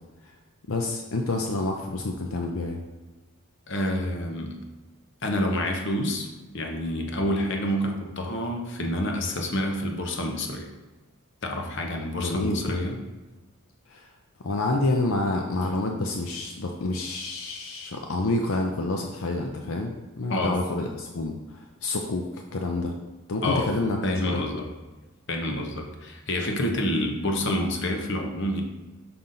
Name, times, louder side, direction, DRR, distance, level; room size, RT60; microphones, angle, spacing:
voice 1, 0.7-2.8 12.2-12.6 13.9-14.1 14.4-22.9 23.3-24.0 24.2-24.4, left 2 dB, 75° left, 2 dB, 0.6 m, -28 dB
voice 2, 3.7-4.6 5.2-10.7 11.4-13.0 20.3-20.6 23.4-23.7 24.0-24.7 25.3-28.6, left 1 dB, 55° left, 3 dB, 0.9 m, -28 dB
5.9 x 5.5 x 3.9 m, 1.2 s
head